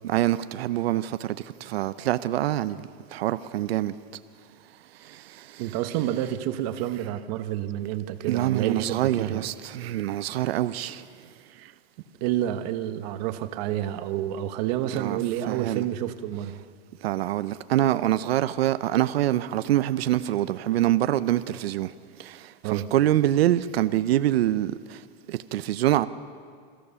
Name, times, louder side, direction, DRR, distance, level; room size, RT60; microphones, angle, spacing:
voice 1, 0.0-3.9 5.0-5.6 8.3-11.1 14.9-15.2 15.5-15.8 17.0-21.9 22.2-25.0 25.3-26.1, right 13 dB, 90° right, 0.8 m, -25 dB
voice 2, 5.6-9.5 12.2-16.6 22.6-22.9, right 12 dB, 45° right, 1.1 m, -29 dB
27.5 x 15.5 x 7.0 m
supercardioid pair, 165°, 30 cm